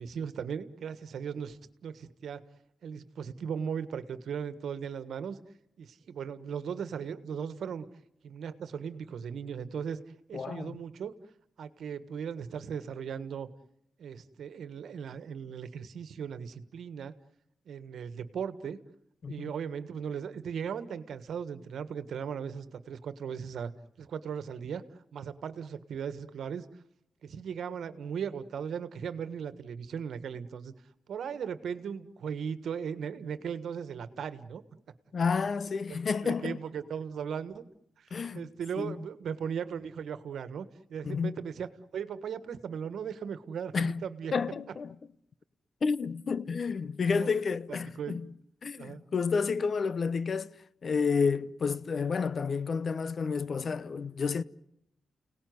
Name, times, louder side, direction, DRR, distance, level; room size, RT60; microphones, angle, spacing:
voice 1, 0.0-2.4 2.8-5.4 5.8-7.9 8.2-10.0 10.3-11.1 11.6-13.5 14.0-17.1 17.6-18.8 19.3-23.7 24.0-24.8 25.1-26.6 27.2-30.7 31.1-34.6 36.2-37.6 38.0-38.1 38.3-44.3 47.1-47.3 48.0-48.2 48.8-49.0, right 7 dB, 75° right, 1.5 m, -37 dB
voice 2, 10.3-10.8 19.2-19.5 35.1-36.6 38.1-38.5 38.8-38.9 41.0-41.3 43.7-44.0 44.3-45.0 45.8-48.3 48.6-50.5 50.8-54.4, left 5 dB, 55° left, 0.9 m, -30 dB
30.0 x 18.5 x 9.6 m
cardioid pair, 60°, 0 cm